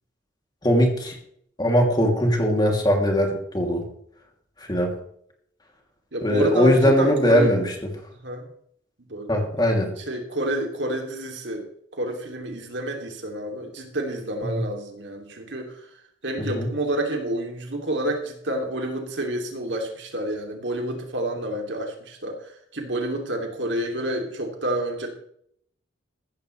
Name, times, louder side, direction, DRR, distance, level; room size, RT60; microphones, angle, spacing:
voice 1, 0.6-1.2 1.6-3.9 4.7-4.9 6.2-7.7 9.3-9.9 14.4-14.6 16.4-16.7, equal, 25° left, 1 dB, 2.9 m, -20 dB
voice 2, 6.1-7.6 8.2-8.5 9.1-15.9 16.2-25.1, right 1 dB, 70° right, 2 dB, 2.9 m, -29 dB
15.0 x 13.5 x 3.3 m, 0.67 s
head